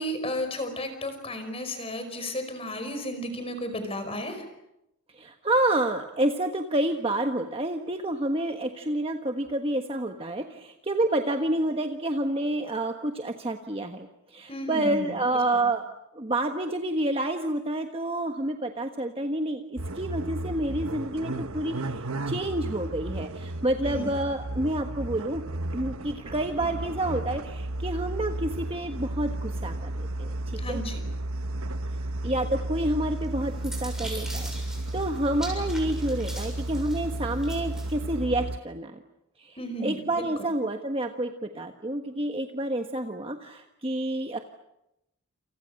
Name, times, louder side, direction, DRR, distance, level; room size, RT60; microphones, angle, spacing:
voice 1, 0.0-4.4 14.5-15.6 23.8-24.2 30.6-31.0 39.6-40.3, equal, 25° left, 8 dB, 5.1 m, -34 dB
voice 2, 5.2-15.8 16.1-25.4 25.7-30.8 32.2-34.5 34.9-39.0 39.4-39.6 39.8-44.4, right 1 dB, 25° right, 4 dB, 1.4 m, -29 dB
sound 1, 19.8-38.6, right 1 dB, 75° right, 1.2 m, -33 dB
sound 2, 33.2-38.0, right 1 dB, ahead, 7.0 m, -42 dB
28.5 x 28.5 x 6.6 m, 0.86 s
head